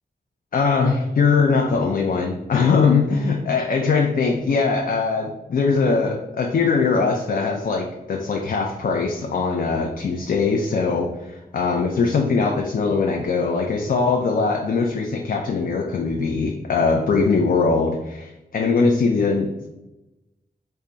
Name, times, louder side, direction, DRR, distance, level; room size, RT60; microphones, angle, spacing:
voice 1, 0.5-19.7, left 4 dB, 60° left, 2 dB, 0.4 m, -21 dB
3.3 x 2.2 x 3.8 m, 0.97 s
wide cardioid pair, 90°, 17 cm